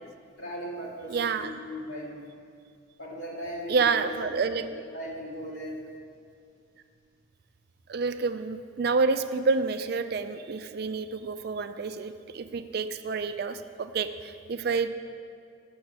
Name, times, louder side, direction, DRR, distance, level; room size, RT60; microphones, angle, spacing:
voice 1, 0.4-2.2 3.0-4.3 4.9-5.8, equal, 85° left, -6 dB, 2.5 m, -37 dB
voice 2, 1.1-1.6 3.7-4.7 7.9-14.9, right 4 dB, 50° right, 10 dB, 0.4 m, -28 dB
7.0 x 6.4 x 7.3 m, 2.4 s
head